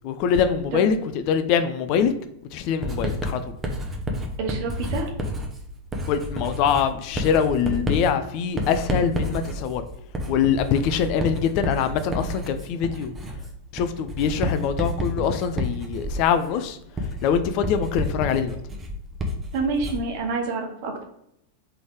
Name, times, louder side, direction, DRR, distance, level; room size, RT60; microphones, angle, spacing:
voice 1, 0.0-1.0 1.3-2.1 2.5-3.4 6.1-9.8 10.3-13.1 13.7-16.8 17.2-18.6, left 7 dB, 45° left, 9 dB, 0.4 m, -23 dB
Writing, 2.8-20.2, equal, 15° right, 0.8 m, -30 dB
voice 2, 4.4-5.1 19.5-21.0, right 3 dB, 45° right, 3 dB, 1.0 m, -27 dB
3.8 x 3.3 x 3.5 m, 0.76 s
figure-of-eight pair, 90°, 0 cm